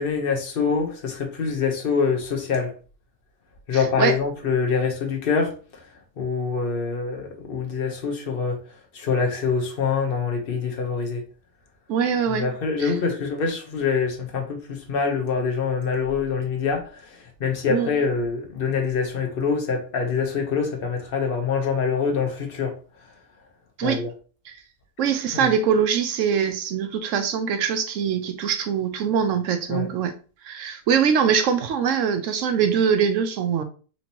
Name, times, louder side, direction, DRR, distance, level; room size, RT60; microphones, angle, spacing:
voice 1, 0.0-2.7 3.7-5.5 6.2-8.6 8.9-11.2 12.3-16.9 17.4-22.7 23.8-24.1 25.3-25.5 29.7-29.9, left 5 dB, 45° left, 0.9 m, -25 dB
voice 2, 3.7-4.2 11.9-12.5 12.8-12.9 17.7-17.9 23.8-24.0 24.5-24.6 25.0-30.1 30.4-33.6, right 7 dB, 70° right, 0.9 m, -23 dB
4.3 x 2.8 x 2.8 m
omnidirectional pair, 1.5 m